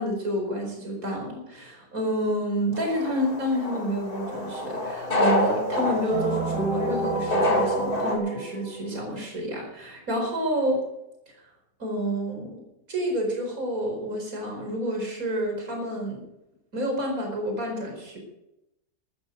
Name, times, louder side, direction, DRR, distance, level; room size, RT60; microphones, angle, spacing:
voice 1, 0.0-10.8 11.8-12.6 12.9-16.2 16.7-18.2, equal, 50° right, 1 dB, 5.2 m, -29 dB
sound 1, 2.7-8.2, left 1 dB, 30° left, 3.2 m, -28 dB
sound 2, 6.1-9.0, right 3 dB, 85° right, 5.2 m, -29 dB
14.5 x 13.5 x 5.3 m, 0.86 s
omnidirectional pair, 1.9 m